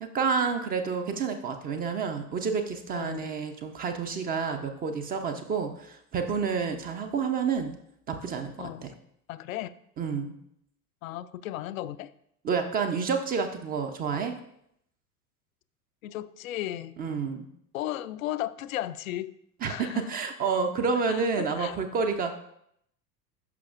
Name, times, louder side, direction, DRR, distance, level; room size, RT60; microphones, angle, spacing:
voice 1, 0.0-7.8 8.1-8.9 10.0-10.3 12.4-14.4 17.0-17.5 19.6-22.3, right 5 dB, 20° right, 6 dB, 0.5 m, -29 dB
voice 2, 2.9-3.3 8.6-8.9 9.3-9.7 11.0-12.1 16.0-17.0 17.7-19.3 19.6-20.1 21.1-21.8, left 13 dB, 60° left, 12 dB, 0.5 m, -35 dB
11.5 x 5.4 x 2.4 m, 0.73 s
figure-of-eight pair, 80°, 48 cm